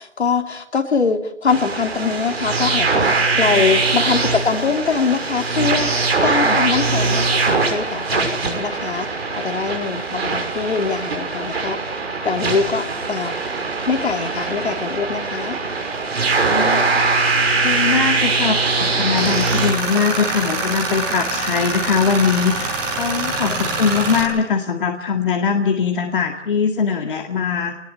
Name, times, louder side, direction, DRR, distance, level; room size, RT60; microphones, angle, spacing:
voice 1, 0.0-5.9 6.2-11.9 12.2-13.4 13.9-15.6 23.4-23.8, left 5 dB, 60° left, 5 dB, 3.2 m, -23 dB
sound 1, 1.5-19.7, right 3 dB, 55° right, 6.2 m, -21 dB
voice 2, 16.4-17.2 17.6-27.8, left 6 dB, 45° left, 3 dB, 2.1 m, -21 dB
Tools, 19.1-24.2, right 2 dB, 15° right, 5.4 m, -25 dB
27.0 x 20.0 x 8.5 m, 0.81 s
hypercardioid pair, 170°, 36 cm